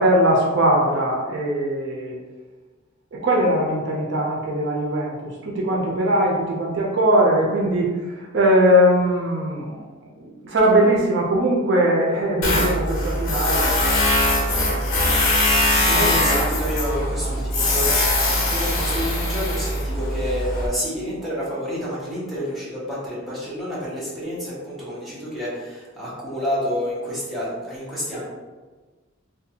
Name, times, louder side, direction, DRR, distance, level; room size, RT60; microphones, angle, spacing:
voice 1, 0.0-2.2 3.1-9.8 10.2-13.7 14.4-15.1 15.7-16.5 17.4-17.5, equal, 60° right, -2 dB, 0.5 m, -21 dB
Tools, 12.4-20.7, left 1 dB, 90° left, 0.6 m, -21 dB
voice 2, 15.8-18.0 18.5-28.2, equal, ahead, -9 dB, 0.8 m, -29 dB
2.5 x 2.2 x 2.7 m, 1.3 s
head